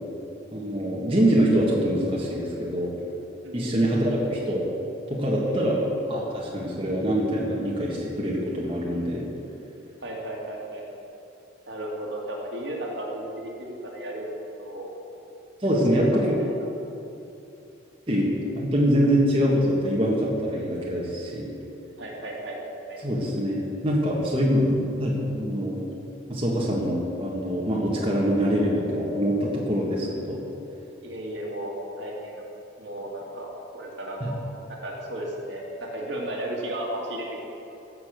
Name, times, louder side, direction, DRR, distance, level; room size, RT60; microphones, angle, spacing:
voice 1, 0.5-2.9 3.5-4.6 5.1-5.8 6.1-9.3 15.6-16.4 18.1-21.5 23.0-25.8 26.3-30.4 34.2-34.3, equal, 25° right, -5 dB, 1.8 m, -24 dB
voice 2, 10.0-10.8 11.7-14.9 15.9-16.5 22.0-22.6 22.9-23.0 31.0-32.4 32.8-33.5 33.7-34.4 34.7-37.4, right 1 dB, 60° right, -2 dB, 2.3 m, -34 dB
16.0 x 7.0 x 6.6 m, 2.9 s
head